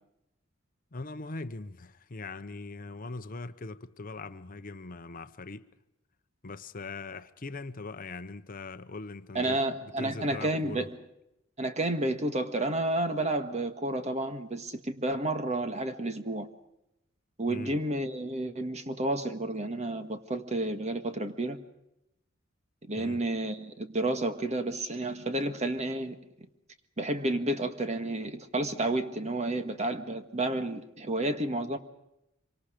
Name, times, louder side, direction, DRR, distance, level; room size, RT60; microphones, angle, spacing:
voice 1, 0.9-5.7 6.4-9.6 10.0-10.9 17.5-17.8 23.0-23.2, left 3 dB, 45° left, 0.8 m, -41 dB
voice 2, 9.3-10.9 11.6-16.5 17.4-21.6 22.9-26.1 27.0-31.8, right 1 dB, 35° right, 1.6 m, -31 dB
26.0 x 24.5 x 5.1 m
head